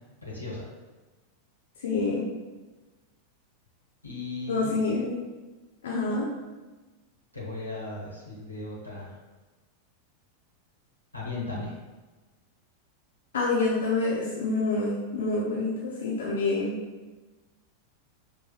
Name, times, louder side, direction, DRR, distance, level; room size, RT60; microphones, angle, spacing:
voice 1, 0.2-0.7 4.0-4.8 7.3-9.1 11.1-11.7, left 2 dB, 90° left, -6 dB, 1.1 m, -36 dB
voice 2, 1.8-2.2 4.5-5.2 5.8-6.3 13.3-16.8, left 3 dB, 65° left, -6 dB, 0.6 m, -27 dB
5.2 x 3.0 x 2.3 m, 1.2 s
figure-of-eight pair, 90°, 0 cm